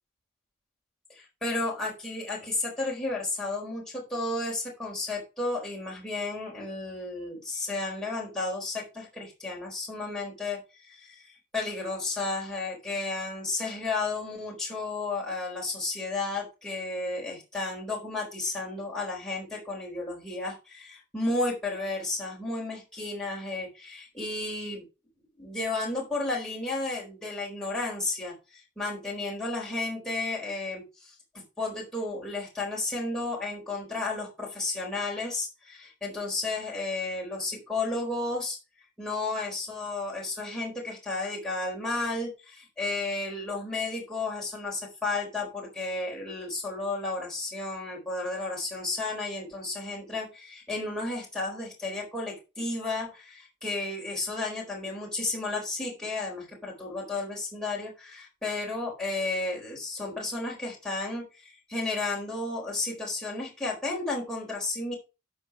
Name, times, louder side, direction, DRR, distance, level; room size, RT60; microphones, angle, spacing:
voice 1, 1.1-11.3 11.5-24.8 25.4-38.6 39.0-64.9, left 2 dB, 5° left, -4 dB, 4.1 m, -33 dB
13.0 x 4.7 x 4.8 m, 0.30 s
head